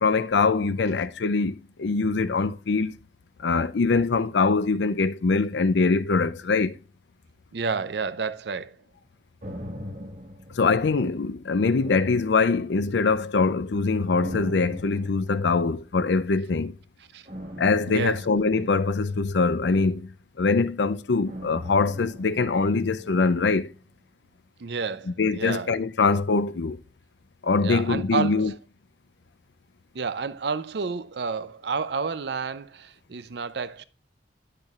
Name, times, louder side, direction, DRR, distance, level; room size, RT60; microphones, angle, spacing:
voice 1, 0.0-3.0 3.4-6.8 10.5-16.7 17.6-23.7 25.2-26.8 27.4-28.5, left 4 dB, 70° left, 0.5 m, -23 dB
voice 2, 7.5-8.8 17.1-17.3 17.9-18.2 24.6-25.7 27.6-28.6 29.9-33.8, right 5 dB, 65° right, 0.5 m, -30 dB
sound 1, 9.4-11.3 11.8-13.1 14.1-15.9 17.3-19.7 21.3-23.4 23.7-23.8, equal, 40° right, 1.8 m, -41 dB
10.0 x 6.7 x 2.4 m
head